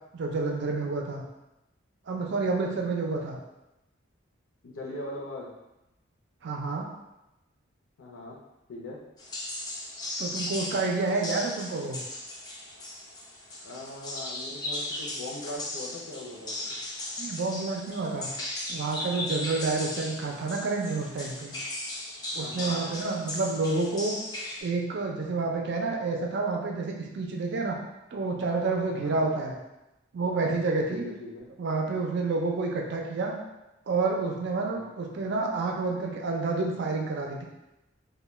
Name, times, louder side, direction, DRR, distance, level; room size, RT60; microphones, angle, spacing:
voice 1, 0.1-1.2 2.1-3.4 6.4-6.9 10.2-12.0 17.2-18.3 18.7-21.5 22.3-24.2 24.6-27.8 28.1-29.6 30.1-31.1 31.6-33.4 33.9-37.4, right 3 dB, 60° right, 0 dB, 0.4 m, -29 dB
voice 2, 4.6-5.5 8.0-8.4 8.7-9.0 13.6-16.6 22.4-22.8 28.9-29.3 30.9-31.5 34.6-34.9, left 1 dB, 90° left, -3 dB, 0.5 m, -40 dB
sound 1, 9.2-24.6, left 1 dB, 20° left, 0.4 m, -37 dB
2.2 x 2.2 x 3.1 m, 0.95 s
head